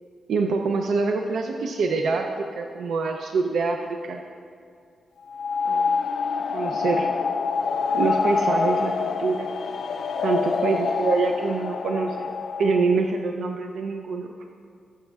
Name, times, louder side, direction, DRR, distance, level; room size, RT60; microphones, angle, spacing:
voice 1, 0.3-4.2 5.7-5.9 6.5-7.1 7.9-9.5 10.2-12.3 12.6-14.5, right 4 dB, 75° right, 4 dB, 0.4 m, -25 dB
sound 1, 5.3-12.9, left 5 dB, 60° left, 0.3 m, -26 dB
14.0 x 7.4 x 2.3 m, 2.3 s
wide cardioid pair, 170°, 0 cm